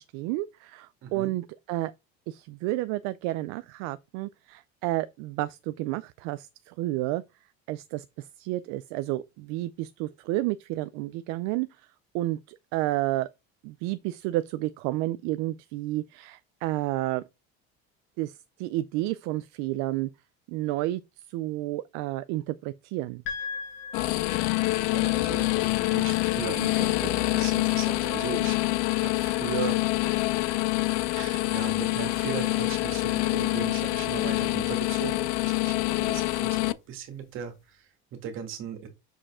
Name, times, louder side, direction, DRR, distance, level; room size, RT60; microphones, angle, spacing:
voice 1, 0.0-1.9 2.3-7.2 7.7-11.7 12.1-13.3 13.6-17.2 18.2-20.1 20.5-21.0 21.3-23.2, right 17 dB, 70° right, 0.5 m, -31 dB
voice 2, 1.0-1.3 24.9-25.5 25.8-28.6 29.0-30.7 31.1-38.9, right 7 dB, 45° right, 1.9 m, -38 dB
sound 1, 23.3-37.6, left 6 dB, 40° left, 1.8 m, -45 dB
sound 2, 23.9-36.7, left 21 dB, 65° left, 0.5 m, -26 dB
6.7 x 5.0 x 3.6 m
cardioid pair, 180°, 30 cm